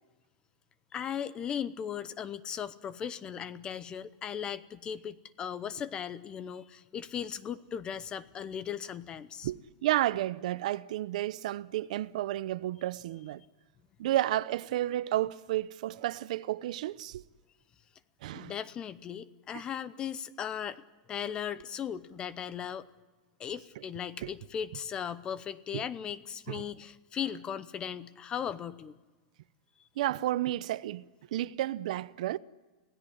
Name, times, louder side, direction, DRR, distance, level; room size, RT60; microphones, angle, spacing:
voice 1, 0.9-9.5 18.3-20.8 21.1-22.9 23.4-28.9, left 8 dB, 20° left, 0.8 m, -37 dB
voice 2, 9.4-13.4 14.0-17.2 18.2-18.5 19.5-19.6 24.2-24.3 25.7-25.8 26.5-26.7 30.0-32.4, right 14 dB, 65° right, 0.7 m, -32 dB
29.0 x 17.0 x 10.0 m
supercardioid pair, 160°, 4 cm